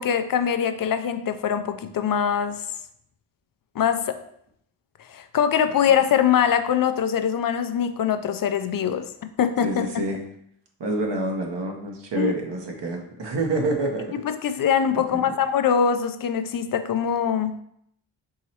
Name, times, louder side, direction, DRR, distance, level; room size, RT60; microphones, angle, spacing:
voice 1, 0.0-2.6 3.8-4.2 5.1-9.0 9.4-9.9 12.2-12.3 14.2-17.5, left 8 dB, 45° left, 9 dB, 0.5 m, -23 dB
voice 2, 9.6-10.2 10.8-14.1 14.9-15.3, right 2 dB, 55° right, 1 dB, 1.0 m, -27 dB
4.7 x 3.0 x 2.8 m, 0.72 s
supercardioid pair, 45°, 50 cm